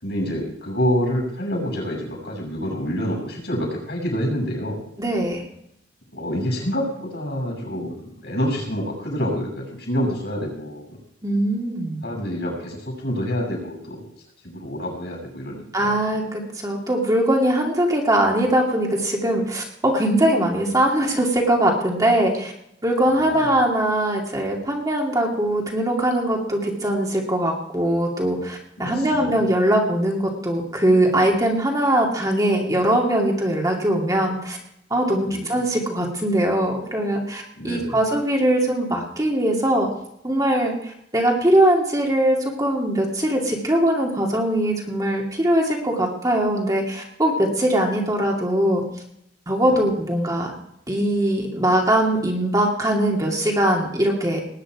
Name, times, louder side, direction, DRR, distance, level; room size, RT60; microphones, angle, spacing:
voice 1, 0.0-4.8 6.1-10.8 12.0-14.0 14.4-16.2 23.2-23.5 28.8-29.4 35.3-35.6 37.6-38.0 49.7-49.8, equal, 65° left, 0 dB, 6.8 m, -27 dB
voice 2, 5.0-5.4 11.2-12.0 15.7-22.5 22.8-34.6 34.9-39.9 40.2-48.8 49.5-50.5 50.9-54.4, right 1 dB, 20° right, 0 dB, 2.5 m, -21 dB
19.5 x 9.8 x 4.9 m, 0.74 s
head